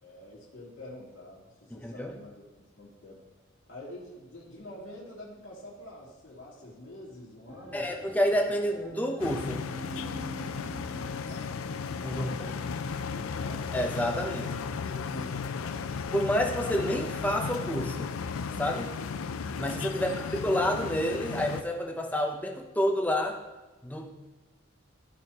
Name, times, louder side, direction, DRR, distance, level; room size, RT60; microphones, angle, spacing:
voice 1, 0.0-3.2 3.7-7.8 11.2-11.6 12.1-12.7 13.1-13.7 14.1-14.4 14.8-15.8 19.9-20.2, left 1 dB, 65° left, -8 dB, 2.5 m, -46 dB
voice 2, 1.7-2.1 7.7-9.6 12.0-12.3 13.7-14.4 16.1-18.1 18.6-18.9 19.6-20.1 20.4-23.4 23.8-24.1, equal, 10° left, 2 dB, 0.8 m, -29 dB
sound 1, 7.5-18.6 18.9-19.5 20.1-20.2, right 1 dB, 20° right, 1.2 m, -50 dB
sound 2, 9.2-21.6, left 5 dB, 85° left, 0.5 m, -35 dB
13.5 x 5.5 x 3.0 m, 1.2 s
head